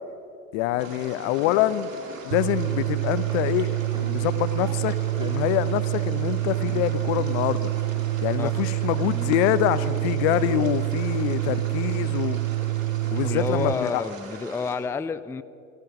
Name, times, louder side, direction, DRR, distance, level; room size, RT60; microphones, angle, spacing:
voice 1, 0.5-1.9 2.2-7.7 8.2-12.4 13.1-14.0, left 13 dB, 65° left, 15 dB, 0.8 m, -25 dB
sound 1, 0.7-0.9 1.4-1.6 2.0-2.2 2.7-2.9 3.3-3.5 3.9-4.2 4.6-4.8 5.2-5.5 5.8-6.2 6.5-6.9 7.1-7.5 7.8-8.1 8.4-10.7, right 2 dB, 10° right, 2.2 m, -43 dB
sound 2, 0.8-14.8, right 3 dB, 85° right, 2.5 m, -42 dB
sound 3, 2.3-13.7, right 17 dB, 65° right, 0.5 m, -27 dB
voice 2, 13.2-15.4, left 5 dB, 5° left, 15 dB, 0.4 m, -29 dB
17.0 x 14.5 x 6.0 m, 2.6 s
hypercardioid pair, 65°, 39 cm